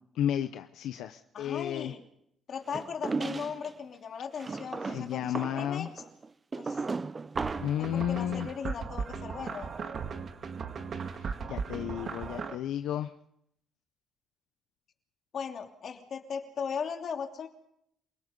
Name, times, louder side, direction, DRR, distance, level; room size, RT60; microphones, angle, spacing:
voice 1, 0.1-1.9 4.8-5.9 7.6-8.5 11.2-13.1, left 10 dB, 85° left, 9 dB, 0.8 m, -32 dB
voice 2, 1.3-2.0 2.5-6.0 6.6-6.8 7.8-9.7 15.3-17.5, left 6 dB, 60° left, 4 dB, 2.8 m, -38 dB
sound 1, 2.7-3.7 4.4-7.8, right 4 dB, 30° right, 0.8 m, -35 dB
sound 2, 7.4-12.6, right 5 dB, 55° right, 2.0 m, -37 dB
28.0 x 18.5 x 5.4 m, 0.74 s
cardioid pair, 90°, 0 cm